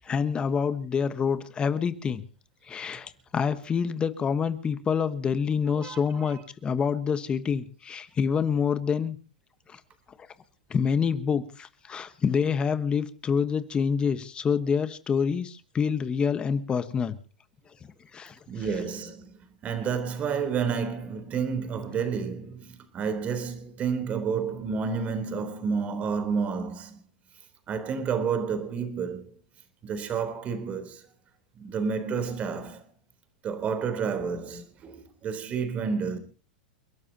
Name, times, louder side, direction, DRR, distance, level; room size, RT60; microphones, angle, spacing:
voice 1, 0.0-2.2 2.7-9.2 9.7-9.8 10.7-17.2 18.1-18.4, left 6 dB, 20° left, 1.2 m, -27 dB
voice 2, 5.8-6.3 18.5-19.4 19.6-27.0 27.7-29.3 29.8-31.1 31.6-32.8 33.4-36.2, right 6 dB, 30° right, 3.5 m, -30 dB
30.0 x 12.5 x 2.8 m
hypercardioid pair, 130°, 5 cm